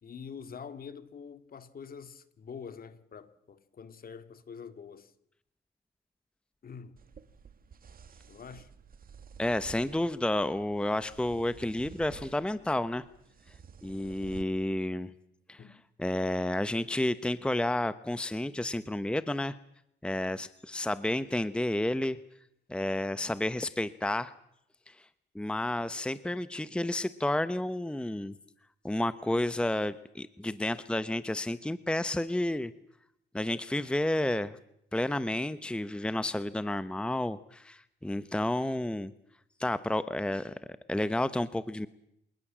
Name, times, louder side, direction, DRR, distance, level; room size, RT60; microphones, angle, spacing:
voice 1, 0.0-5.1 6.6-7.0 8.3-8.7 15.6-15.8, left 6 dB, 50° left, 2.2 m, -45 dB
sound 1, 7.0-14.4, right 6 dB, 45° right, 2.2 m, -52 dB
voice 2, 9.4-13.0 13.8-15.1 15.5-15.6 16.0-19.6 20.0-22.2 22.7-24.3 24.9-25.0 25.3-28.3 28.8-32.7 33.3-34.6 34.9-39.1 39.6-40.5 40.9-41.9, left 1 dB, 5° left, 1.0 m, -31 dB
26.5 x 19.5 x 7.5 m
cardioid pair, 90°, 20 cm